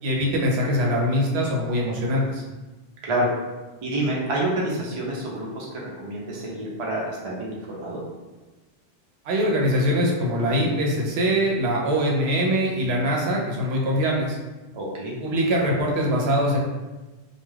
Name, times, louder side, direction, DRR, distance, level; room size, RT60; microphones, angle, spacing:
voice 1, 0.0-2.4 9.2-14.4 15.2-16.6, equal, 75° right, -2 dB, 0.8 m, -23 dB
voice 2, 3.8-8.0 14.7-15.1, right 1 dB, 40° right, -4 dB, 0.5 m, -28 dB
2.3 x 2.2 x 3.2 m, 1.2 s
omnidirectional pair, 1.1 m